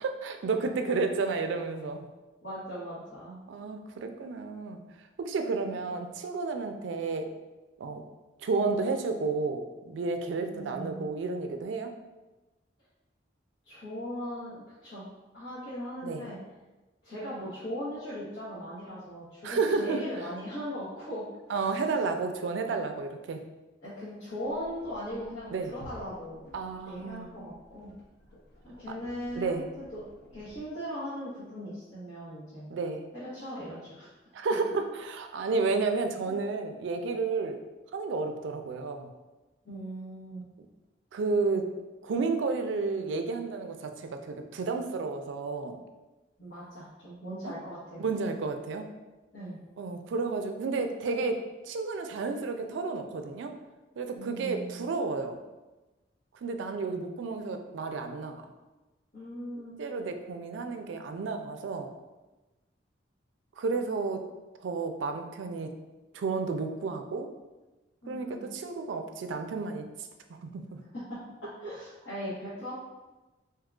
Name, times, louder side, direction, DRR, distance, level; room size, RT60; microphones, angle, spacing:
voice 1, 0.0-2.1 3.5-4.8 5.2-7.3 7.8-8.0 8.4-12.0 16.0-16.2 19.4-20.0 21.5-23.4 25.5-25.7 26.5-27.3 29.4-29.7 32.7-33.0 34.3-37.6 37.9-39.1 40.6-40.7 41.1-41.7 42.0-45.8 47.4-47.5 48.0-48.9 49.8-53.5 54.0-55.4 56.4-58.4 59.8-61.9 63.6-64.2 64.6-65.7 66.1-67.3 68.1-70.1 70.4-70.8, right 4 dB, 80° right, 6 dB, 0.3 m, -31 dB
voice 2, 2.4-3.4 5.7-5.9 10.5-11.1 13.6-15.0 15.3-16.4 17.0-21.8 23.8-26.5 26.8-27.9 28.6-29.6 29.9-30.0 30.3-32.7 33.1-34.1 36.3-36.4 39.6-40.5 46.4-48.0 49.3-49.6 54.1-54.9 59.1-59.8 63.9-64.1 68.0-68.5 70.9-72.7, equal, 70° left, -12 dB, 1.0 m, -39 dB
sound 1, 24.4-30.6, right 1 dB, 55° left, 0.7 m, -54 dB
3.6 x 2.8 x 2.3 m, 1.1 s
head